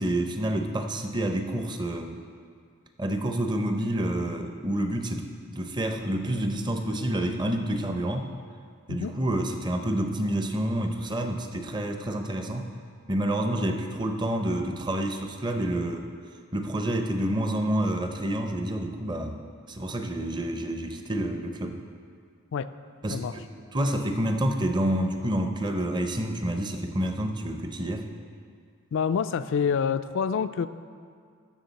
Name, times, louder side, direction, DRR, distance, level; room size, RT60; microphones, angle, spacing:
voice 1, 0.0-2.1 3.0-8.3 8.9-12.7 13.1-16.1 16.5-19.4 19.7-21.8 23.0-23.4 23.7-28.1, right 1 dB, 20° right, 5 dB, 0.6 m, -28 dB
voice 2, 28.9-30.7, left 6 dB, 60° left, 13 dB, 0.3 m, -27 dB
16.0 x 6.4 x 4.1 m, 2.2 s
head